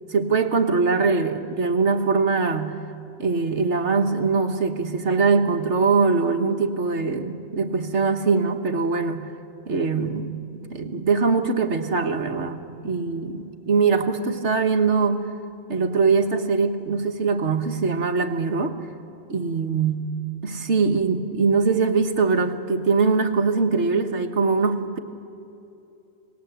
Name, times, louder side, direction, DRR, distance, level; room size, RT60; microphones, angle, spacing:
voice 1, 0.1-2.8 3.2-9.3 9.7-10.4 10.7-15.2 15.7-18.7 19.3-20.1 20.4-25.0, right 4 dB, 65° right, 6 dB, 1.6 m, -22 dB
29.0 x 20.0 x 8.1 m, 2.8 s
omnidirectional pair, 1.3 m